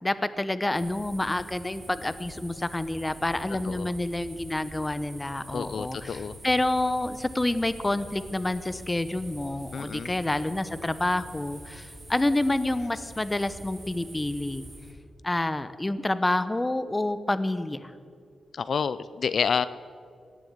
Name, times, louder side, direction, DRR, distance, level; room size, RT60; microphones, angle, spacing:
voice 1, 0.0-14.6 15.2-17.9, left 2 dB, 15° left, 13 dB, 0.7 m, -28 dB
sound 1, 0.7-14.9, right 1 dB, 30° right, 3.3 m, -45 dB
voice 2, 5.5-6.4 9.7-10.1 18.5-19.7, left 6 dB, 65° left, 15 dB, 0.4 m, -29 dB
17.5 x 7.2 x 9.5 m, 2.2 s
wide cardioid pair, 100°, 0 cm